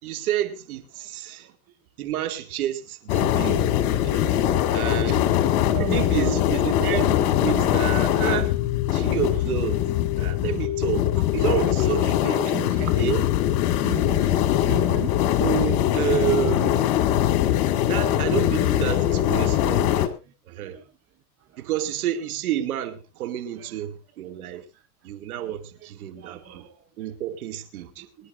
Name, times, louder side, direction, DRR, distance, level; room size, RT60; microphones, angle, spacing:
voice 1, 0.0-1.5 2.0-4.3 4.7-5.3 5.8-8.6 8.9-9.8 10.1-12.5 12.9-13.2 14.1-14.4 15.4-17.1 17.9-20.1 20.5-20.8 21.6-24.6 25.0-26.6 27.0-28.0, right 11 dB, 70° right, 2.5 m, -30 dB
sound 1, 3.1-20.1, left 12 dB, 50° left, 2.4 m, -22 dB
voice 2, 5.7-6.4 12.4-12.9 13.8-14.3 14.7-15.2 20.2-20.3 20.6-20.8 23.6-23.7 25.8-25.9 26.2-26.8 28.2-28.3, right 11 dB, 35° right, 1.8 m, -35 dB
24.0 x 11.0 x 2.6 m
hypercardioid pair, 105°, 44 cm